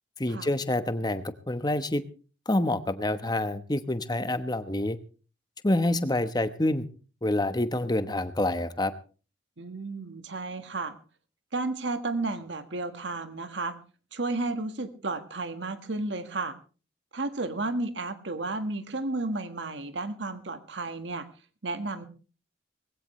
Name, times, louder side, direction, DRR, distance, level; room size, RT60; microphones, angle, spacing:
voice 1, 0.2-2.0 2.5-5.0 5.6-6.9 7.2-8.9, left 1 dB, 20° left, 11 dB, 1.0 m, -27 dB
voice 2, 9.6-10.9 11.5-13.7 14.1-16.6 17.1-21.3 21.6-22.1, right 2 dB, 70° right, 10 dB, 1.6 m, -32 dB
20.5 x 16.0 x 3.2 m, 0.36 s
head